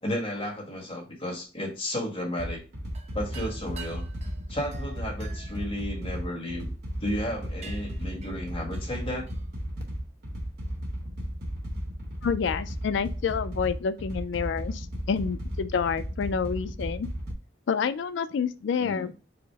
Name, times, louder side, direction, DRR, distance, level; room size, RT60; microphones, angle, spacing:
voice 1, 0.0-2.6 3.1-4.1 4.5-6.7 7.0-9.3 18.8-19.1, left 1 dB, 30° left, 1.3 m, -33 dB
sound 1, 2.4-17.3, equal, 55° right, 1.0 m, -35 dB
sound 2, 2.9-6.6 7.2-7.3 7.6-9.5, right 6 dB, 35° right, 0.5 m, -48 dB
voice 2, 12.2-17.1 17.7-19.1, left 6 dB, 70° left, 0.3 m, -28 dB
4.8 x 2.0 x 4.5 m
head